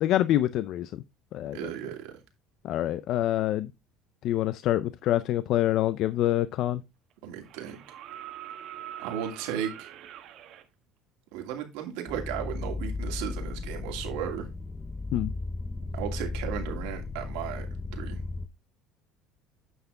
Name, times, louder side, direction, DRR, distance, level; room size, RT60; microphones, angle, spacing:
voice 1, 0.0-1.0 1.3-1.7 2.6-3.7 4.2-6.8 15.1-15.3, left 13 dB, 60° left, 0.4 m, -26 dB
voice 2, 1.5-2.2 7.2-7.8 9.0-9.9 11.3-14.5 15.9-17.7 17.9-18.2, right 10 dB, 85° right, 2.5 m, -35 dB
sound 1, 6.3-6.4 7.4-10.6 12.4-12.5, right 12 dB, 60° right, 1.2 m, -43 dB
sound 2, 12.1-18.5, left 3 dB, 5° left, 0.7 m, -35 dB
9.4 x 5.9 x 3.5 m
cardioid pair, 130°, 0 cm